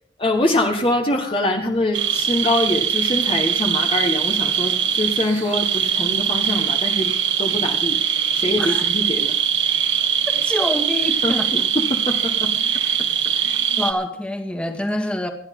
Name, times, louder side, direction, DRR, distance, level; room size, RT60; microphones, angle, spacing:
voice 1, 0.2-7.1 7.4-8.0 8.3-9.3 11.2-12.5, left 1 dB, 30° left, 2 dB, 1.5 m, -23 dB
sound 1, 1.9-13.9, right 8 dB, 85° right, 1.8 m, -21 dB
voice 2, 10.3-11.5 13.8-15.3, left 1 dB, 5° left, 4 dB, 1.9 m, -26 dB
28.0 x 10.5 x 3.8 m, 0.64 s
head